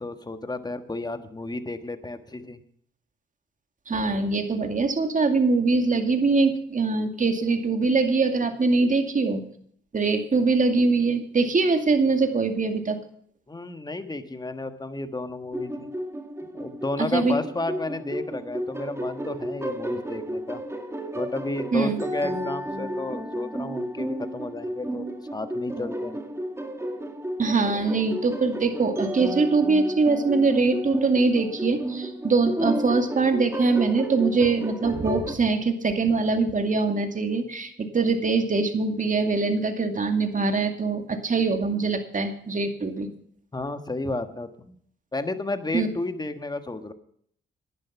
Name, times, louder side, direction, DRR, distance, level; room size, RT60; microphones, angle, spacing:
voice 1, 0.0-2.6 13.5-15.9 16.5-20.6 21.1-26.2 43.5-44.7 45.1-46.9, left 2 dB, 20° left, 9 dB, 1.5 m, -32 dB
voice 2, 3.9-9.4 9.9-13.0 17.0-17.4 21.7-22.0 27.4-43.1 45.7-45.9, right 4 dB, 40° right, 6 dB, 2.3 m, -23 dB
sound 1, 15.5-35.4, right 1 dB, 10° right, 1.9 m, -32 dB
11.0 x 10.5 x 5.7 m, 0.63 s
cardioid pair, 65°, 21 cm